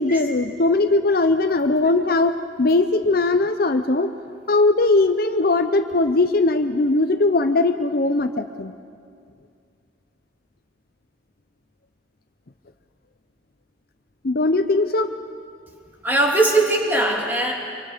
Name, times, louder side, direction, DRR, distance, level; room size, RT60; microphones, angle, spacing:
voice 1, 0.0-4.1 4.5-8.7 14.2-15.1, left 2 dB, 50° left, 9 dB, 0.7 m, -19 dB
voice 2, 16.0-17.5, right 2 dB, 10° right, -2 dB, 2.8 m, -20 dB
26.5 x 24.0 x 5.1 m, 2.3 s
head